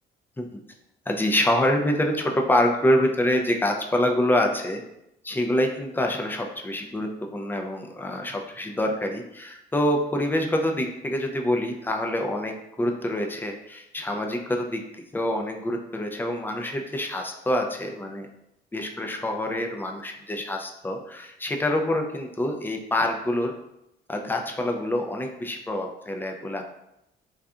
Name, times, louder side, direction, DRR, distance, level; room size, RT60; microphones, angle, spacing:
voice 1, 1.1-4.8 5.2-18.3 18.7-23.5 24.1-26.6, left 1 dB, 10° left, 3 dB, 0.3 m, -26 dB
2.6 x 2.3 x 2.3 m, 0.83 s
cardioid pair, 90°, 20 cm